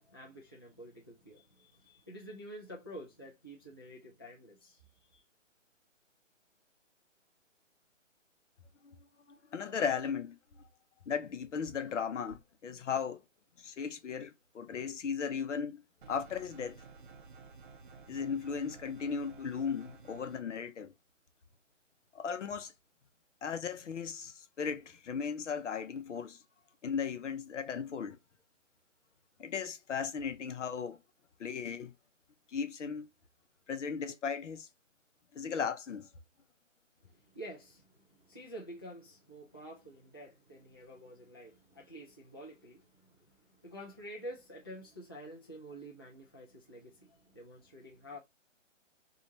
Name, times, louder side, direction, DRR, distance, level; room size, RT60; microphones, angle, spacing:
voice 1, 0.0-5.2 37.0-48.2, equal, 20° left, 0.4 m, -49 dB
voice 2, 9.3-10.4 11.1-13.2 13.6-16.8 18.1-20.9 22.1-22.7 23.4-26.4 26.8-28.2 29.4-31.0 31.4-31.9 32.5-33.1 33.7-34.7 35.3-36.1, left 6 dB, 70° left, 0.7 m, -36 dB
sound 1, 16.0-20.4, right 4 dB, 45° right, 0.6 m, -53 dB
2.9 x 2.4 x 2.7 m
hypercardioid pair, 150°, 38 cm